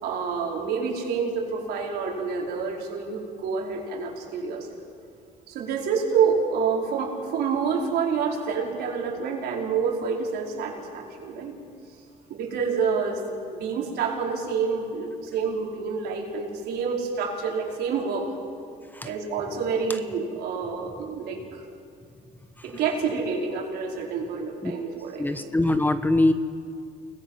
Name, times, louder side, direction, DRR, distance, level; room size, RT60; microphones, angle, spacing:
voice 1, 0.0-4.8 5.5-11.6 12.3-13.2 13.5-18.3 19.0-21.6 22.6-25.5, right 5 dB, 75° right, -2 dB, 4.8 m, -28 dB
voice 2, 25.2-26.3, left 2 dB, 10° left, 10 dB, 1.1 m, -22 dB
30.0 x 20.5 x 5.8 m, 2.4 s
cardioid pair, 110°, 17 cm